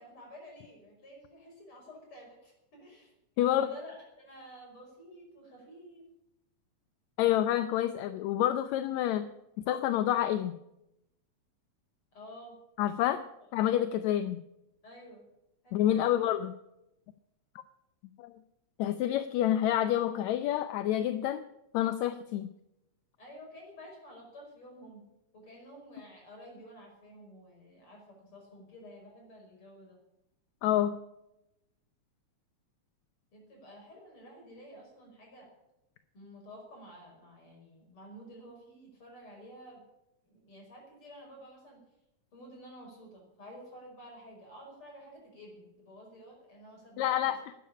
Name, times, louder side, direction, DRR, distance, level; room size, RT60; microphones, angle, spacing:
voice 1, 0.0-3.1 3.4-6.0 12.1-12.6 14.8-15.3 15.6-16.2 23.2-25.0 25.3-30.0 33.3-35.5 36.1-39.8 40.3-41.8 42.3-47.4, equal, 45° left, 0 dB, 6.4 m, -51 dB
voice 2, 3.4-3.7 7.2-9.3 9.7-10.5 12.8-13.2 13.5-14.4 15.7-16.5 18.2-18.3 18.8-21.4 21.7-22.5 30.6-30.9 47.0-47.5, left 12 dB, 80° left, 11 dB, 1.9 m, -28 dB
12.5 x 10.0 x 9.9 m, 0.87 s
omnidirectional pair, 3.3 m